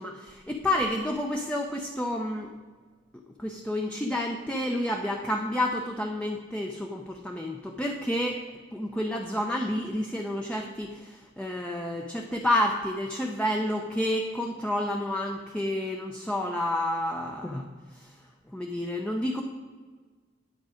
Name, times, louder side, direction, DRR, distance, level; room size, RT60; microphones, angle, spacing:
voice 1, 0.0-2.5 3.4-8.4 8.7-18.2 18.5-19.4, left 1 dB, 5° left, 1 dB, 0.6 m, -30 dB
9.0 x 8.4 x 5.0 m, 1.4 s
head